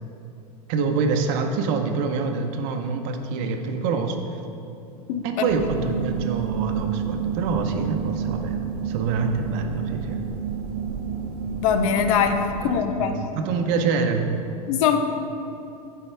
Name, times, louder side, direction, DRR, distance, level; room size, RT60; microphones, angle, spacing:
voice 1, 0.7-4.2 5.2-10.2 12.7-14.4, right 4 dB, 55° right, 5 dB, 0.8 m, -26 dB
voice 2, 5.1-5.5 11.6-13.1 14.7-15.0, left 7 dB, 60° left, 7 dB, 0.7 m, -22 dB
sound 1, 5.5-12.8, right 7 dB, 75° right, 1.2 m, -30 dB
11.5 x 4.7 x 3.4 m, 2.7 s
hypercardioid pair, 100°, 20 cm